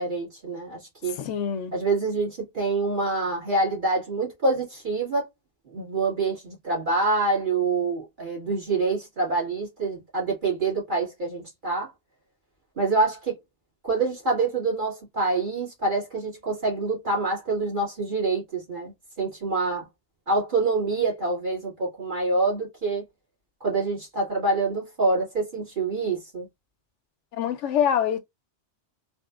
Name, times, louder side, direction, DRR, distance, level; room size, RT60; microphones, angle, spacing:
voice 1, 0.0-1.2 1.7-5.3 5.7-11.9 12.8-13.4 13.8-19.9 20.3-23.0 23.6-26.5, right 3 dB, 45° right, 2.4 m, -26 dB
voice 2, 1.2-1.7 27.3-28.2, left 8 dB, 90° left, 0.9 m, -25 dB
4.1 x 2.7 x 2.4 m
omnidirectional pair, 1.2 m